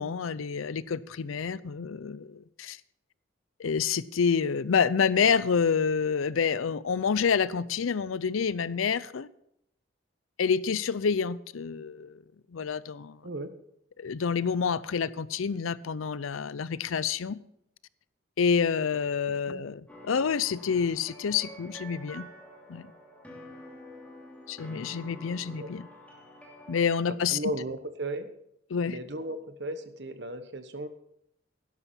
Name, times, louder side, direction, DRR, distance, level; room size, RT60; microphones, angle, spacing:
voice 1, 0.0-2.8 3.6-9.3 10.4-12.2 12.5-13.2 14.0-17.4 18.4-22.3 22.7-22.8 24.5-25.8 26.7-27.4 28.7-29.0, left 6 dB, 85° left, 0.5 m, -28 dB
sound 1, 19.9-26.9, equal, 10° left, 2.6 m, -48 dB
voice 2, 27.3-28.3 28.8-30.9, right 1 dB, 55° right, 1.1 m, -35 dB
12.0 x 11.5 x 4.4 m
head